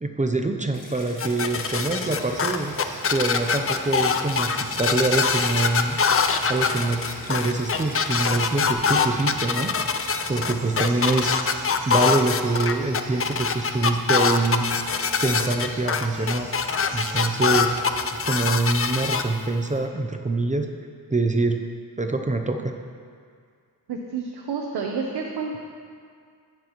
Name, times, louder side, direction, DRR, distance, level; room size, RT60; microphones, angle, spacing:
voice 1, 0.0-2.7 3.1-6.0 6.5-7.0 7.3-9.7 10.3-11.3 11.9-14.7 15.2-16.5 16.9-17.7 18.2-20.7 21.1-21.6 22.0-22.7, right 2 dB, 20° right, 4 dB, 0.6 m, -25 dB
Stream, 0.7-8.7, left 2 dB, 55° left, 1.5 m, -43 dB
sound 1, 1.2-19.2, left 5 dB, 35° left, 0.5 m, -23 dB
sound 2, 1.4-19.1, right 2 dB, 65° right, 2.3 m, -41 dB
voice 2, 23.9-25.6, right 5 dB, 80° right, 0 dB, 0.9 m, -29 dB
16.5 x 7.3 x 3.0 m, 2.1 s
wide cardioid pair, 90°, 39 cm